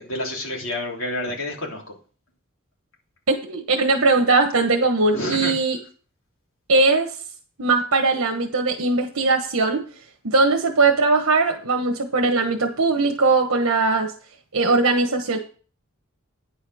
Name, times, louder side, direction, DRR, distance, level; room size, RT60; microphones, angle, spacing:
voice 1, 0.0-2.0 5.1-5.5, left 1 dB, 70° left, -2 dB, 3.4 m, -29 dB
voice 2, 3.3-5.8 6.7-7.1 7.6-9.8 10.2-14.1 14.5-15.4, right 3 dB, 85° right, 4 dB, 1.2 m, -20 dB
9.9 x 5.2 x 6.2 m, 0.39 s
head